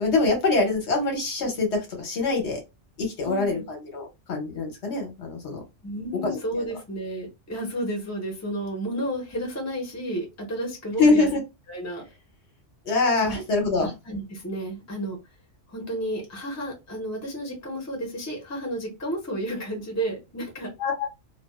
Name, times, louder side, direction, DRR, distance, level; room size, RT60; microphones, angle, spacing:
voice 1, 0.0-2.6 3.0-5.6 6.2-6.4 11.0-11.4 12.9-13.9 20.8-21.1, left 3 dB, 65° left, 2 dB, 1.0 m, -24 dB
voice 2, 3.2-3.6 5.8-11.3 11.7-12.0 13.2-13.4 13.8-15.2 15.7-20.7, right 1 dB, 15° left, 0 dB, 0.7 m, -32 dB
2.3 x 2.3 x 2.3 m, 0.24 s
omnidirectional pair, 1.3 m